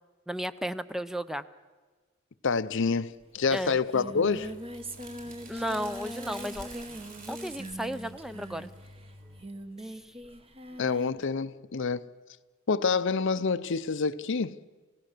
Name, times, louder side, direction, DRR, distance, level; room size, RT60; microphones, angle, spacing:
voice 1, 0.3-1.4 3.5-3.8 5.5-6.9 7.3-8.7 9.8-9.9, equal, ahead, 0.6 m, -34 dB
voice 2, 2.4-4.5 10.8-12.1 12.7-14.6, left 5 dB, 65° left, 0.7 m, -27 dB
Singing, 3.2-3.3 3.5-11.2, right 1 dB, 30° right, 1.4 m, -42 dB
sound 1, 4.0-9.5, right 2 dB, 45° right, 5.0 m, -49 dB
28.5 x 16.5 x 6.7 m
head